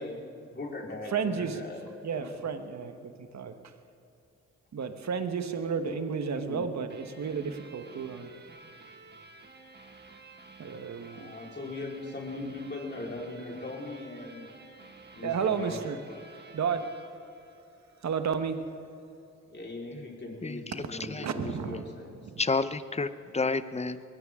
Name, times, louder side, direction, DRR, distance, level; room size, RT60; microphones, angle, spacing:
voice 1, 0.0-1.8 2.1-2.4 5.9-6.0 6.3-6.6 9.9-10.0 11.1-14.5 15.1-15.8 19.5-22.1, left 2 dB, 35° left, -2 dB, 4.4 m, -39 dB
voice 2, 1.1-1.6 2.0-3.6 4.7-8.3 10.6-11.3 15.2-16.0 16.5-16.9 18.0-18.6 21.0-21.8 22.2-22.4, right 6 dB, 65° right, 8 dB, 1.3 m, -32 dB
sound 1, 6.9-18.2, right 3 dB, 35° right, 1.7 m, -52 dB
voice 3, 20.4-21.3 22.4-24.0, left 3 dB, 20° left, 13 dB, 0.8 m, -30 dB
21.5 x 16.5 x 3.7 m, 2.7 s
cardioid pair, 55°, 29 cm